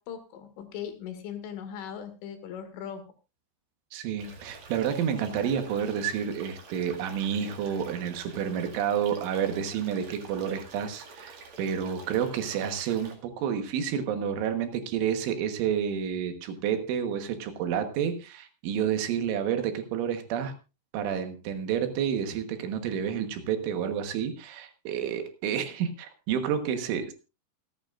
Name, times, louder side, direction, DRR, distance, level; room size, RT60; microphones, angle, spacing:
voice 1, 0.0-3.1, left 8 dB, 80° left, 8 dB, 4.4 m, -39 dB
voice 2, 3.9-20.5 20.9-27.1, right 8 dB, 75° right, 7 dB, 3.7 m, -30 dB
sound 1, 4.2-13.1, right 4 dB, 45° right, 2.5 m, -48 dB
27.0 x 9.3 x 2.5 m, 0.30 s
omnidirectional pair, 5.7 m